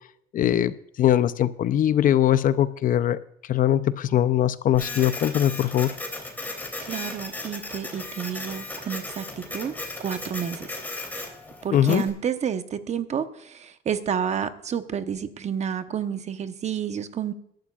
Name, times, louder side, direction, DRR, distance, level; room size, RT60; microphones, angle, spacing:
voice 1, 0.3-3.2 3.5-6.0 11.7-12.0, left 11 dB, 55° left, 0.6 m, -21 dB
Printer, 4.7-12.1, left 2 dB, 10° left, 3.2 m, -36 dB
voice 2, 6.8-9.7 10.0-10.7 11.6-17.3, right 8 dB, 40° right, 1.0 m, -30 dB
21.5 x 11.5 x 2.4 m
cardioid pair, 110°, 17 cm